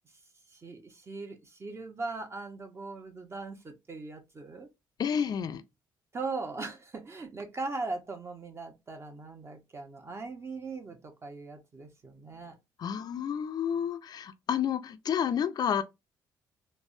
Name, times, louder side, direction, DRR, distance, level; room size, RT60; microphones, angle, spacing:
voice 1, 0.5-4.7 6.1-12.6, right 3 dB, 30° right, 0.8 m, -39 dB
voice 2, 5.0-5.6 12.8-15.8, left 8 dB, 50° left, 0.4 m, -30 dB
3.3 x 2.1 x 2.5 m
cardioid pair, 75°, 9 cm